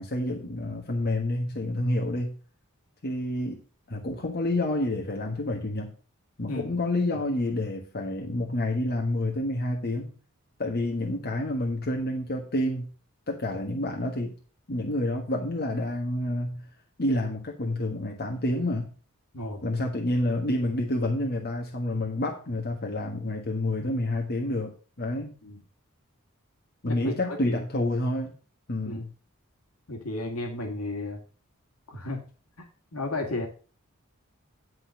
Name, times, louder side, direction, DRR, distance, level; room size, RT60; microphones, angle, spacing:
voice 1, 0.0-2.3 3.0-3.6 3.9-5.9 6.4-10.1 10.6-12.9 13.3-14.3 14.7-16.6 17.0-18.9 19.6-25.4 26.8-28.3 28.7-29.1, left 1 dB, 45° left, 0 dB, 1.5 m, -28 dB
voice 2, 26.9-27.6 28.8-29.0 29.9-31.2 31.9-32.2 32.6-32.7 32.9-33.5, left 2 dB, 80° left, 2 dB, 2.0 m, -33 dB
11.0 x 4.0 x 7.4 m, 0.38 s
head